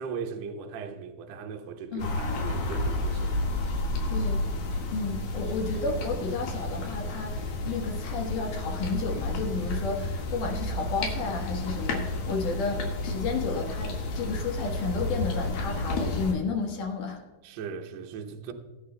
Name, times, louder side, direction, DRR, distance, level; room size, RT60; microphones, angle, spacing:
voice 1, 0.0-4.3 17.4-18.5, right 6 dB, 80° right, 1.5 m, -39 dB
sound 1, 2.0-16.3, left 2 dB, 80° left, 3.6 m, -31 dB
voice 2, 4.1-4.4 4.9-17.2, left 4 dB, 65° left, 2.7 m, -32 dB
20.5 x 9.5 x 2.2 m
omnidirectional pair, 4.2 m